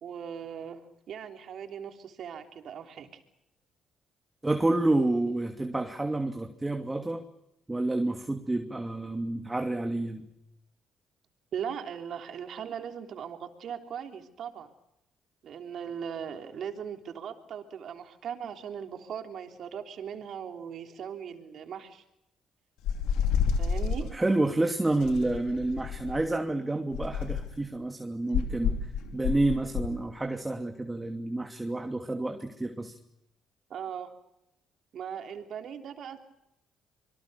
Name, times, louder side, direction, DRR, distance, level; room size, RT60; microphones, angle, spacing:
voice 1, 0.0-3.1 11.5-14.7 15.4-22.0 23.6-24.1 33.7-34.1 34.9-36.2, right 8 dB, 65° right, 6 dB, 3.5 m, -39 dB
voice 2, 4.4-7.2 7.7-10.3 24.1-28.8 29.1-32.9, right 2 dB, 15° right, 5 dB, 2.7 m, -29 dB
sound 1, 22.8-24.1 25.0-26.3 26.9-27.6 28.3-30.0, left 6 dB, 80° left, 2.9 m, -29 dB
26.5 x 24.0 x 6.9 m, 0.84 s
supercardioid pair, 60°, 0 cm